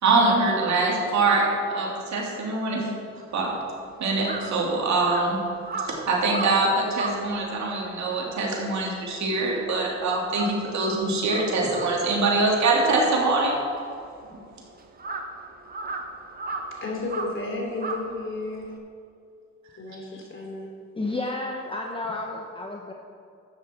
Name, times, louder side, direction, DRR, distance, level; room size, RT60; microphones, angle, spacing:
voice 1, 0.0-2.9 3.3-3.5 4.0-5.4 5.8-13.6 14.3-14.4, right 3 dB, 65° right, -2 dB, 2.8 m, -23 dB
Crow, 3.3-9.8 10.1-18.8, right 3 dB, 30° right, 1.1 m, -37 dB
voice 2, 16.7-18.7 19.8-20.7, left 2 dB, 40° left, -1 dB, 3.2 m, -32 dB
voice 3, 21.0-22.9, left 2 dB, 15° left, 0 dB, 1.0 m, -31 dB
12.5 x 9.2 x 4.5 m, 2.4 s
cardioid pair, 90°, 30 cm